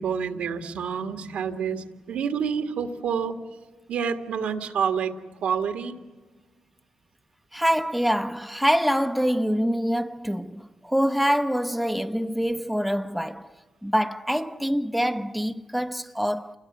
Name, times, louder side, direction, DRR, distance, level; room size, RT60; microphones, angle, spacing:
voice 1, 0.0-3.4 3.9-5.1 5.4-6.0, right 7 dB, 80° right, 1.8 m, -28 dB
voice 2, 7.5-13.5 13.8-16.6, equal, ahead, 0.9 m, -25 dB
28.5 x 21.5 x 7.9 m
cardioid pair, 60°, 2 cm